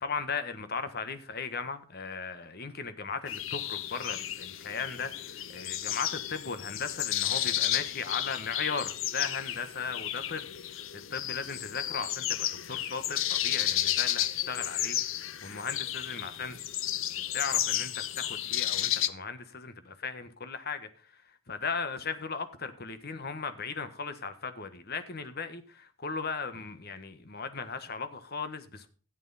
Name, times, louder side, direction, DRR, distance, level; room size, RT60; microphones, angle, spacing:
voice 1, 0.0-5.1 5.5-10.4 11.1-15.0 15.4-16.6 17.3-20.9 21.5-28.9, left 5 dB, 50° left, 1.3 m, -37 dB
sound 1, 3.3-19.1, left 12 dB, 65° left, 0.7 m, -32 dB
13.0 x 8.3 x 4.1 m
head